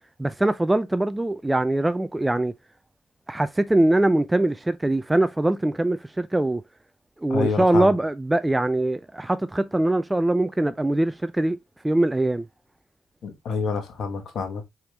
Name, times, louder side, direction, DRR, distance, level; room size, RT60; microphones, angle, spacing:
voice 1, 0.2-2.5 3.3-6.6 7.2-11.6 11.8-12.4, right 1 dB, 15° right, 0.4 m, -22 dB
voice 2, 7.3-7.9 13.2-14.6, left 5 dB, 70° left, 1.2 m, -27 dB
4.7 x 3.5 x 2.9 m
hypercardioid pair, 45°, 0 cm